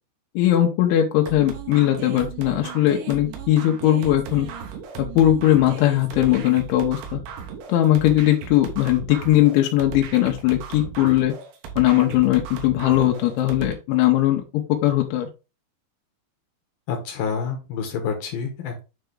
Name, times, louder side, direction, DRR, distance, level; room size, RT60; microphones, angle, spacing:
voice 1, 0.4-4.5 5.0-7.2 7.7-11.3 11.8-15.3, left 13 dB, 90° left, 3 dB, 3.2 m, -19 dB
sound 1, 1.3-13.7, right 7 dB, 90° right, 3.7 m, -36 dB
voice 2, 16.9-18.8, left 6 dB, 70° left, 4 dB, 2.5 m, -28 dB
9.3 x 3.4 x 3.7 m, 0.29 s
omnidirectional pair, 5.2 m